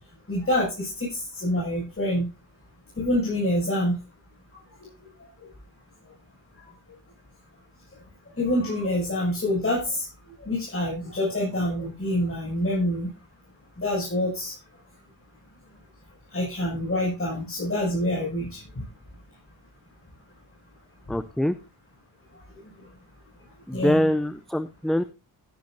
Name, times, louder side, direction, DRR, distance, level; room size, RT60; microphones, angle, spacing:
voice 1, 0.3-2.3 3.0-3.9 8.4-10.0 10.4-13.1 13.8-14.5 16.3-18.8 23.7-24.0, left 1 dB, 30° left, -5 dB, 7.1 m, -26 dB
voice 2, 21.1-21.5 23.7-25.0, equal, ahead, 12 dB, 0.5 m, -24 dB
16.0 x 10.5 x 2.7 m, 0.29 s
cardioid pair, 75°, 41 cm